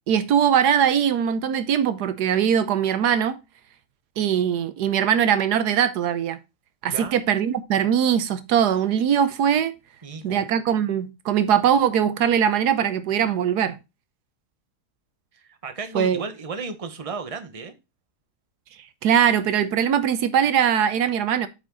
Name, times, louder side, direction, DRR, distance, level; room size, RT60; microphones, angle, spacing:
voice 1, 0.1-3.4 4.2-6.4 6.8-9.7 10.2-13.8 15.9-16.2 19.0-21.5, right 8 dB, 75° right, 1.3 m, -21 dB
voice 2, 10.0-10.5 15.3-17.7, right 4 dB, 25° right, 1.1 m, -34 dB
8.9 x 5.3 x 3.8 m
omnidirectional pair, 1.7 m